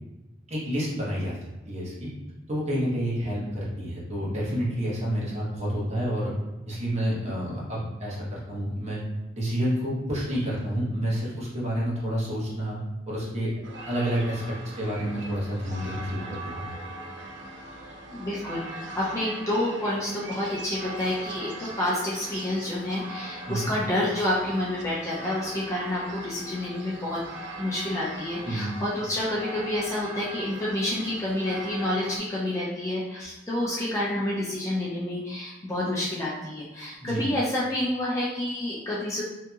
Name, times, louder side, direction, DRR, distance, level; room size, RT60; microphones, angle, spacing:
voice 1, 0.5-1.4 1.7-2.1 2.5-6.3 6.7-9.0 9.3-12.8 13.1-13.6 13.9-16.7 23.5-23.7 28.4-28.7 37.0-37.2, equal, 35° right, -7 dB, 0.9 m, -29 dB
sound 1, 13.6-32.2, right 1 dB, 60° right, 0.4 m, -40 dB
voice 2, 18.1-27.2 27.6-39.2, left 1 dB, 15° left, -7 dB, 0.5 m, -29 dB
2.7 x 2.7 x 2.3 m, 1.1 s
head